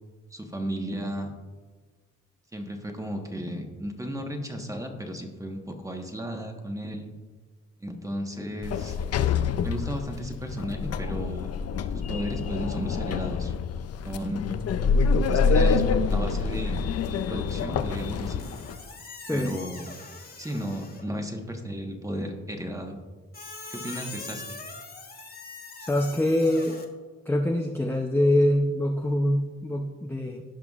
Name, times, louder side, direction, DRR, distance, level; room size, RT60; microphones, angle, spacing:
voice 1, 0.3-1.3 2.5-7.1 7.8-9.0 9.6-11.5 12.1-13.5 14.0-14.5 15.3-18.5 19.3-19.9 20.4-23.0 23.7-24.6, equal, 10° right, 3 dB, 1.2 m, -34 dB
Sliding door, 8.6-18.8, left 5 dB, 55° left, 0.5 m, -26 dB
Squeak, 18.4-21.2 23.3-26.9, left 3 dB, 30° left, 1.3 m, -42 dB
voice 2, 19.3-19.6 25.8-26.8 27.3-30.4, left 1 dB, 5° left, 2 dB, 0.6 m, -24 dB
16.0 x 5.8 x 2.4 m, 1.4 s
cardioid pair, 95°, 30 cm